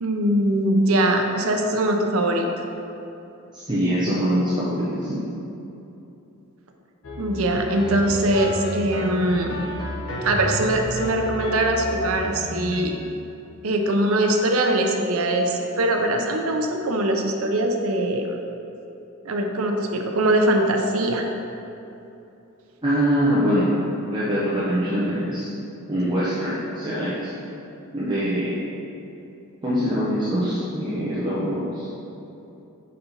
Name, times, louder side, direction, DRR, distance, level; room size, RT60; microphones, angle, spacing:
voice 1, 0.0-2.5 7.2-9.7 10.2-13.0 13.6-18.3 19.2-21.3, right 1 dB, 70° right, 3 dB, 0.6 m, -22 dB
voice 2, 3.5-5.2 22.8-23.7 24.0-25.5 25.9-27.3 27.9-28.5 29.6-31.9, equal, 20° right, -9 dB, 0.7 m, -23 dB
sound 1, 7.0-12.8, equal, 65° left, 0.9 m, -31 dB
5.7 x 4.2 x 3.9 m, 2.9 s
head